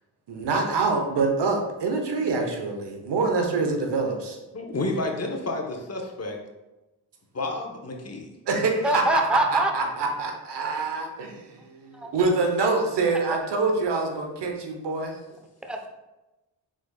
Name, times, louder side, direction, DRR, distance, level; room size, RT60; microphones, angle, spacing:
voice 1, 0.3-4.4 8.5-9.0 9.5-15.2, right 3 dB, 70° right, 3 dB, 0.9 m, -25 dB
voice 2, 4.5-6.4 7.3-8.3, left 2 dB, 35° left, 2 dB, 0.9 m, -30 dB
voice 3, 8.8-9.7 11.9-12.1 13.3-13.4 15.6-15.9, right 1 dB, ahead, 3 dB, 0.7 m, -24 dB
4.8 x 4.1 x 2.3 m, 1.0 s
supercardioid pair, 45°, 44 cm